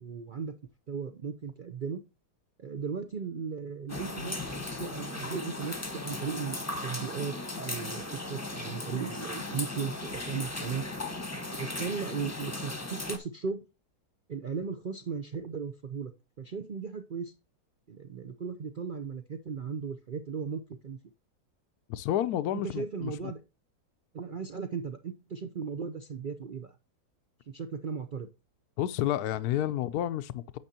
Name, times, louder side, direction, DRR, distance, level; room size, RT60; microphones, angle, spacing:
voice 1, 0.0-0.5 0.9-2.0 2.6-8.0 8.3-10.8 11.6-13.7 14.3-16.1 16.4-17.3 17.9-21.0 22.5-23.4 24.1-26.8 27.5-28.3, right 6 dB, 75° right, 0.4 m, -36 dB
sound 1, 3.9-13.2, left 2 dB, 10° left, 0.9 m, -37 dB
voice 2, 21.9-23.3 28.8-30.6, left 12 dB, 75° left, 1.0 m, -30 dB
9.6 x 7.3 x 2.8 m
omnidirectional pair, 1.8 m